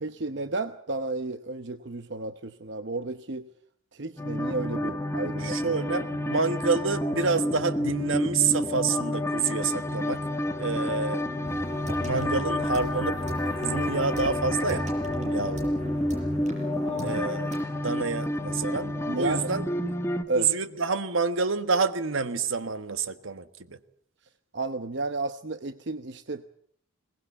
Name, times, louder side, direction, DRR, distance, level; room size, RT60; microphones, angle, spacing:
voice 1, 0.0-3.5 3.9-5.7 11.5-11.6 15.2-15.5 16.9-17.2 19.1-19.5 20.3-20.5 24.5-26.5, right 3 dB, 55° right, 10 dB, 0.9 m, -33 dB
sound 1, 4.2-20.2, left 1 dB, 15° left, 1.4 m, -29 dB
voice 2, 5.4-10.2 10.6-11.2 12.0-14.9 15.3-15.8 17.0-17.5 17.8-19.9 20.3-23.8, right 4 dB, 75° right, 11 dB, 1.4 m, -28 dB
sound 2, 11.4-17.6, right 1 dB, 35° right, 6.1 m, -38 dB
22.0 x 19.0 x 8.3 m, 0.64 s
head